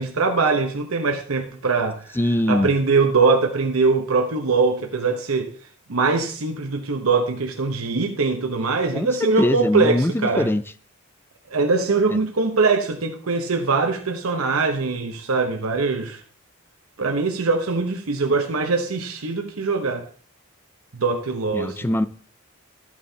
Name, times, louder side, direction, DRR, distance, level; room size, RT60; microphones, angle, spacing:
voice 1, 0.0-2.2 2.5-5.5 5.9-10.5 11.5-16.2 17.0-20.0 20.9-21.8, right 4 dB, 80° right, 0.9 m, -22 dB
voice 2, 2.2-2.7 8.9-10.6 21.5-22.1, left 1 dB, 10° left, 0.4 m, -22 dB
13.5 x 8.5 x 2.8 m
head